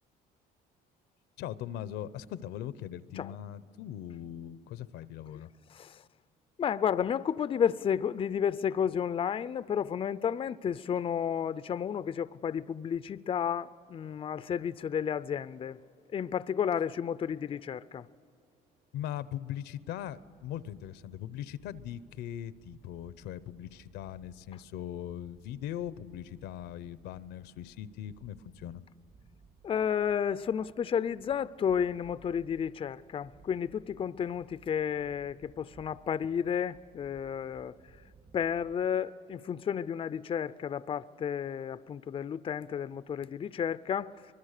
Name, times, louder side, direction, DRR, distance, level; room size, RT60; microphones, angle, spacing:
voice 1, 1.4-5.5 18.9-28.8, left 11 dB, 85° left, 0.7 m, -40 dB
voice 2, 5.7-6.0 6.6-15.8 16.1-18.1 29.6-37.7 38.3-44.3, left 8 dB, 30° left, 0.4 m, -32 dB
sound 1, 19.8-38.8, right 4 dB, 45° right, 2.5 m, -60 dB
24.0 x 21.0 x 6.6 m
cardioid pair, 110°, 17 cm